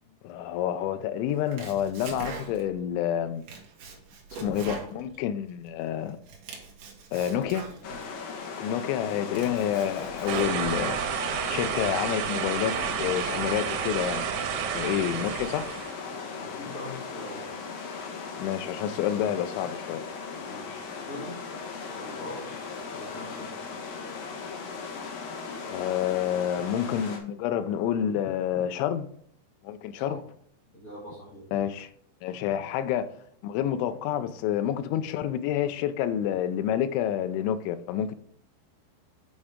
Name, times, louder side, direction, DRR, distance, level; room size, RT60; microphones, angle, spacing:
voice 1, 0.2-3.4 4.3-6.2 7.1-7.7 8.6-11.0 11.5-14.2 14.7-15.7 18.4-20.0 25.7-29.1 29.6-30.2 31.5-31.9 32.2-33.2 33.4-38.2, left 10 dB, 85° left, 3.0 m, -28 dB
Domestic sounds home sounds, 1.3-2.8 3.2-5.7 6.1-8.1 8.6-8.7 9.1-11.1, right 4 dB, 65° right, 2.1 m, -42 dB
sound 1, 7.8-27.2, left 5 dB, 65° left, 2.4 m, -38 dB
sound 2, 10.3-16.0, right 8 dB, 85° right, 3.3 m, -31 dB
voice 2, 16.4-17.4 20.5-21.4 21.9-22.5 22.8-23.6 29.9-30.1 30.7-31.4, left 1 dB, 30° left, 1.7 m, -42 dB
8.7 x 4.8 x 3.6 m
omnidirectional pair, 5.4 m